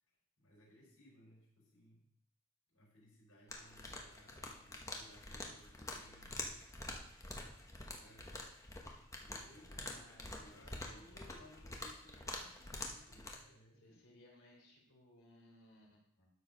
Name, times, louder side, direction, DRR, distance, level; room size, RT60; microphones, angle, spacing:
voice 1, 0.4-2.1 2.7-6.7 7.8-8.3 9.2-14.0, left 1 dB, 85° left, -3 dB, 4.6 m, -63 dB
sound 1, 3.5-13.4, left 2 dB, 15° left, 1.0 m, -47 dB
voice 2, 9.7-11.1 13.8-16.3, left 1 dB, 65° left, -2 dB, 3.5 m, -63 dB
12.0 x 4.7 x 5.3 m, 0.65 s
head